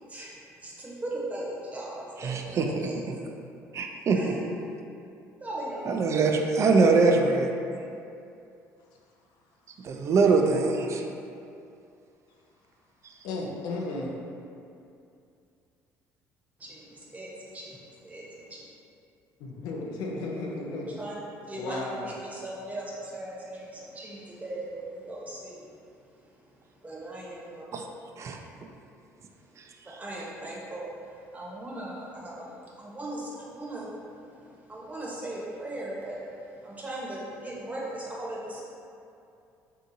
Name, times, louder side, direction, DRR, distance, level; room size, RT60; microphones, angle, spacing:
voice 1, 0.6-3.0 4.1-4.4 5.4-6.1 16.6-18.6 21.0-21.1 21.4-25.7 26.8-27.6 29.8-33.9 34.7-36.2 36.6-38.6, right 1 dB, 20° right, -5 dB, 0.9 m, -38 dB
voice 2, 2.2-2.9 3.7-4.3 5.9-7.5 9.8-11.0 27.7-27.9 28.2-28.4, right 4 dB, 45° right, 3 dB, 0.3 m, -23 dB
voice 3, 13.2-14.1 19.4-20.9 21.5-22.1, left 2 dB, 75° left, -1 dB, 0.5 m, -34 dB
3.5 x 2.8 x 2.6 m, 2.6 s
supercardioid pair, 85°, 7 cm